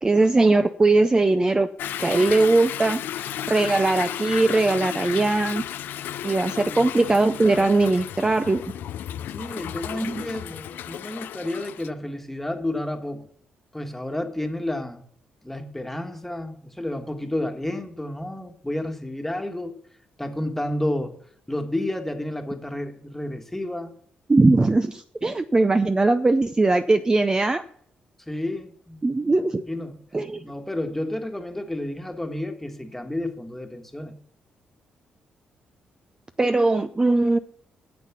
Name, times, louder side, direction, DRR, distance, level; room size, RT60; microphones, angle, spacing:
voice 1, 0.0-1.7 2.0-5.6 6.2-8.6 10.0-10.2 24.3-27.6 29.0-29.6 30.1-30.4 36.4-37.4, right 2 dB, 20° right, 9 dB, 0.6 m, -20 dB
Toilet flush / Drip / Trickle dribble, 1.8-11.9, left 11 dB, 80° left, 0.4 m, -33 dB
voice 2, 9.3-13.3 13.7-15.0 15.4-19.8 20.2-21.1 21.5-23.9 28.3-29.0 29.7-30.0 30.4-34.2, left 1 dB, 10° left, 5 dB, 1.6 m, -31 dB
9.5 x 7.4 x 6.0 m, 0.64 s
cardioid pair, 75°, 3 cm